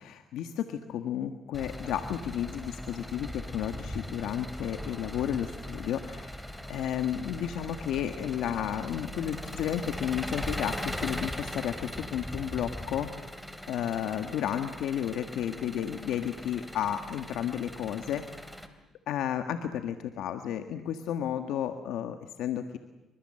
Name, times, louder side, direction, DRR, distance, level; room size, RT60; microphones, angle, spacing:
voice 1, 0.0-6.4 6.7-13.1 13.7-18.2 19.1-22.8, left 10 dB, 85° left, 8 dB, 1.5 m, -32 dB
Engine, 1.5-18.7, equal, 5° left, 3.2 m, -40 dB
26.5 x 25.0 x 7.7 m, 1.1 s
cardioid pair, 90°, 0 cm